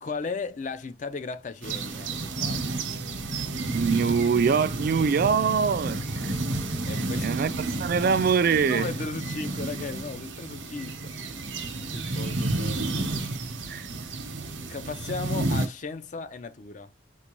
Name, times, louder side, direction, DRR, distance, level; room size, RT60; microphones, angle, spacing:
voice 1, 0.0-2.8 6.8-7.4 8.7-11.1 11.9-12.9 14.7-16.9, left 4 dB, 40° left, 0.4 m, -36 dB
sound 1, 1.6-15.7, right 2 dB, 75° right, 0.8 m, -31 dB
sound 2, 2.2-11.4, left 1 dB, 70° left, 1.9 m, -46 dB
voice 2, 3.7-6.0 7.2-8.9 13.7-13.9, right 6 dB, 50° right, 0.3 m, -23 dB
3.9 x 2.2 x 3.0 m
head